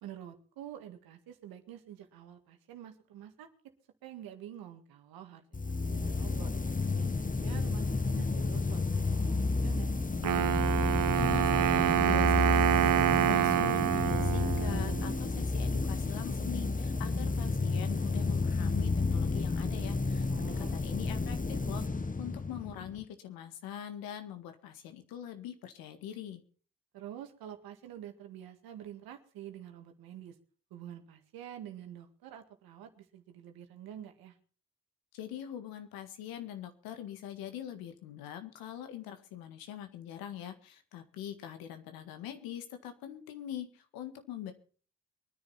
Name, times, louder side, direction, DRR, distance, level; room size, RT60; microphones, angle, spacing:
voice 1, 0.0-3.5 4.0-6.5 7.0-7.8 8.1-9.9 20.3-20.8 26.9-30.4 30.7-34.3, right 10 dB, 85° right, 6 dB, 2.0 m, -47 dB
sound 1, 5.5-23.0, left 3 dB, 25° left, 1.2 m, -31 dB
Wind instrument woodwind instrument, 10.2-15.2, right 11 dB, 65° right, 0.8 m, -27 dB
voice 2, 11.2-21.8 22.2-26.4 35.1-44.5, left 10 dB, 90° left, 8 dB, 1.8 m, -43 dB
23.0 x 10.0 x 4.3 m, 0.41 s
hypercardioid pair, 40°, 35 cm